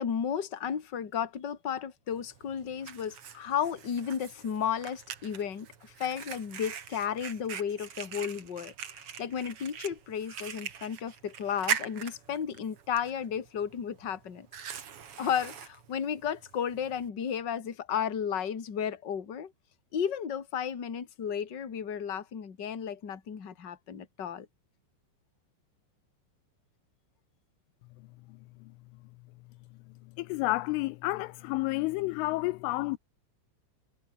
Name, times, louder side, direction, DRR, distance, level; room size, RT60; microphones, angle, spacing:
voice 1, 0.0-8.7 9.2-14.8 15.2-19.5 19.9-24.5, left 8 dB, 35° left, 1.8 m, -33 dB
Fire, 2.1-17.1, right 8 dB, 60° right, 1.5 m, -42 dB
voice 2, 30.2-33.0, left 20 dB, 85° left, 3.1 m, -30 dB
omnidirectional pair, 5.7 m